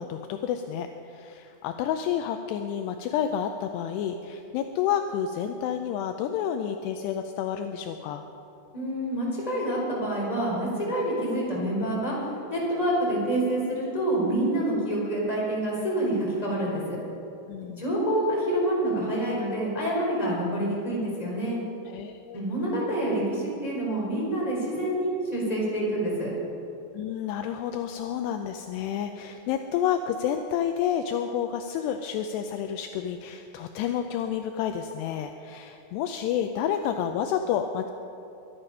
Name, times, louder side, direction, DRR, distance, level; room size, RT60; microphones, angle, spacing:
voice 1, 0.0-8.2 17.5-17.8 21.9-22.4 26.9-37.9, left 9 dB, 85° left, 6 dB, 2.5 m, -30 dB
voice 2, 8.7-12.2 12.5-17.0 17.8-21.6 22.3-26.3, right 1 dB, 10° left, -5 dB, 4.0 m, -27 dB
23.0 x 10.5 x 5.6 m, 2.8 s
omnidirectional pair, 5.4 m